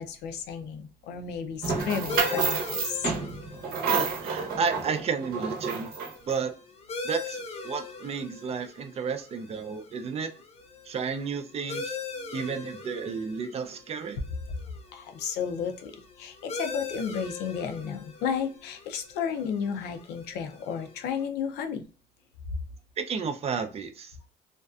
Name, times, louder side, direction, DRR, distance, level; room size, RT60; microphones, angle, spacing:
voice 1, 0.0-3.1 14.9-15.9 16.2-21.8, left 7 dB, 80° left, 0.5 m, -33 dB
sound 1, 1.6-6.3, right 5 dB, 60° right, 0.8 m, -29 dB
sound 2, 2.1-21.2, left 4 dB, 40° left, 0.6 m, -41 dB
voice 2, 3.9-5.9 6.3-6.5 7.0-10.3 10.8-12.0 12.3-14.2 23.0-24.2, right 5 dB, 40° right, 0.4 m, -32 dB
2.5 x 2.3 x 2.2 m
cardioid pair, 110°, 17 cm